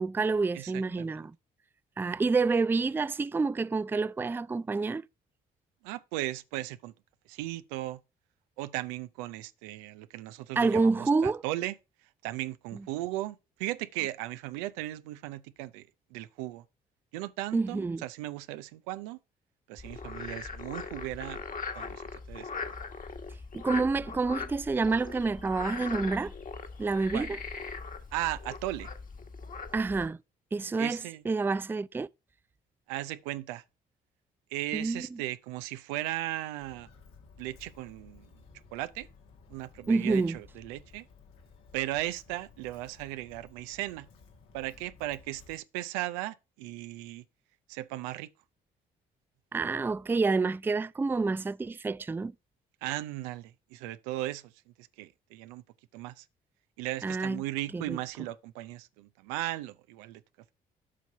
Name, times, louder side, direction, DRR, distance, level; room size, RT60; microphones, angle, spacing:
voice 1, 0.0-1.3 2.0-5.0 10.6-11.4 17.5-18.0 23.5-26.3 26.8-27.4 29.7-30.2 30.5-31.0 31.3-32.1 34.7-35.2 39.9-40.4 49.5-52.3 57.0-57.4 57.7-58.0, right 4 dB, 10° right, 0.3 m, -28 dB
voice 2, 0.5-1.3 5.8-6.9 7.3-8.0 8.6-11.7 12.2-16.6 17.1-19.2 19.7-21.4 21.7-22.5 27.1-27.3 28.1-28.9 30.8-31.2 32.9-33.6 34.5-36.9 37.4-38.3 38.7-39.1 39.5-41.0 41.7-44.1 44.5-47.2 47.7-48.3 52.8-54.5 54.8-55.6 55.9-56.2 56.8-60.2, right 16 dB, 85° right, 0.5 m, -37 dB
Frog, 19.8-30.1, left 4 dB, 40° left, 1.5 m, -40 dB
Walk footsteps, 36.6-45.6, left 4 dB, 80° left, 1.8 m, -56 dB
7.5 x 3.9 x 5.7 m
hypercardioid pair, 50°, 21 cm